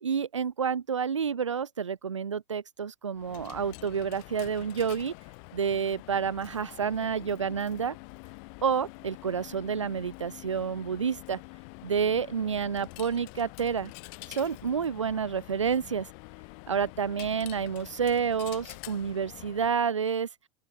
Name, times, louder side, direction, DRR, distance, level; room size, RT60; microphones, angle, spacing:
voice 1, 0.0-5.1 5.5-8.0 8.6-11.4 11.8-13.9 14.3-16.1 16.7-20.3, right 6 dB, 85° right, 0.9 m, -29 dB
Coin (dropping), 3.1-19.8, left 40 dB or more, 50° left, 5.9 m, -47 dB
open air
figure-of-eight pair, 90°, 15 cm